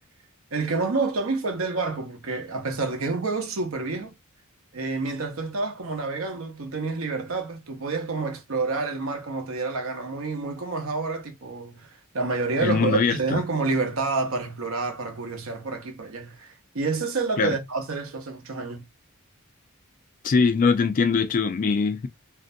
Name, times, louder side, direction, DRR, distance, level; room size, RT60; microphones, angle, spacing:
voice 1, 0.5-4.1 4.7-18.8, right 3 dB, 75° right, 0.7 m, -28 dB
voice 2, 12.6-13.4 17.4-17.5 20.2-22.1, left 5 dB, 40° left, 0.3 m, -22 dB
2.5 x 2.1 x 2.5 m
head